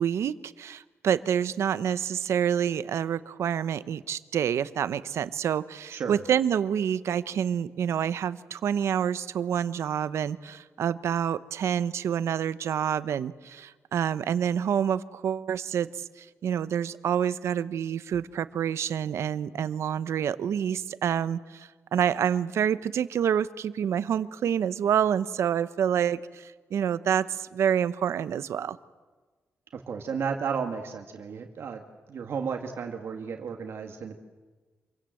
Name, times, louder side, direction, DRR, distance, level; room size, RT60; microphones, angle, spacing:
voice 1, 0.0-28.8, right 8 dB, 80° right, 15 dB, 0.9 m, -27 dB
voice 2, 5.9-6.2 29.7-34.2, right 6 dB, 60° right, 3 dB, 1.9 m, -33 dB
27.5 x 24.0 x 7.8 m, 1.3 s
wide cardioid pair, 165°, 5 cm